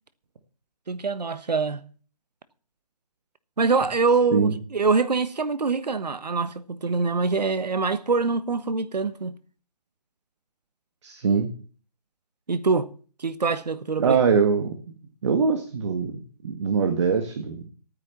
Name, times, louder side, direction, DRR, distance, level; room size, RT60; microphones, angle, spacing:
voice 1, 0.9-1.8 3.6-9.3 12.5-12.9 13.2-14.2, right 4 dB, 90° right, 1.3 m, -24 dB
voice 2, 11.0-11.5 14.0-14.8 15.2-17.7, right 6 dB, 45° right, 1.8 m, -23 dB
12.5 x 9.7 x 7.4 m
hypercardioid pair, 165°, 21 cm